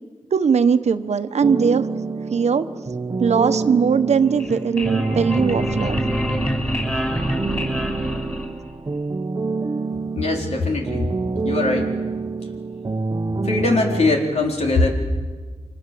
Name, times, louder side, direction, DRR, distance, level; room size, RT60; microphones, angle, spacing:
voice 1, 0.3-1.9 2.3-2.7 3.2-6.0, right 6 dB, 75° right, 10 dB, 1.2 m, -19 dB
sound 1, 1.4-14.1, right 3 dB, 35° right, 1.1 m, -27 dB
sound 2, 4.2-8.9, equal, 15° left, 6.4 m, -27 dB
voice 2, 10.1-11.1 11.4-11.9 13.4-14.9, left 2 dB, 75° left, 1 dB, 4.3 m, -21 dB
30.0 x 25.0 x 7.8 m, 1.5 s
wide cardioid pair, 100°, 11 cm